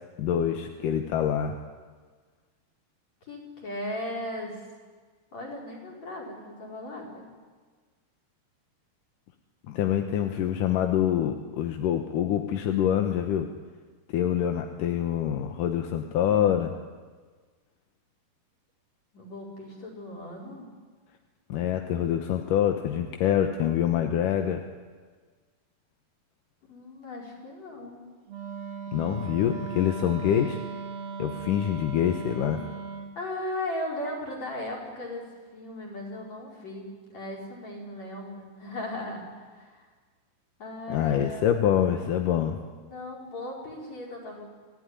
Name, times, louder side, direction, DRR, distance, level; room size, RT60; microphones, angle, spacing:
voice 1, 0.2-1.5 9.7-13.5 14.1-16.7 21.5-24.6 28.9-30.6 31.2-32.6 40.9-42.6, left 10 dB, 65° left, 5 dB, 2.4 m, -25 dB
voice 2, 3.2-4.6 5.3-7.3 19.1-20.7 26.7-28.0 33.2-39.9 40.6-41.6 42.8-44.5, left 1 dB, 45° left, 0 dB, 6.2 m, -37 dB
Wind instrument woodwind instrument, 28.3-33.2, right 5 dB, 50° right, 2.6 m, -38 dB
26.5 x 16.5 x 10.0 m, 1.5 s
omnidirectional pair, 4.6 m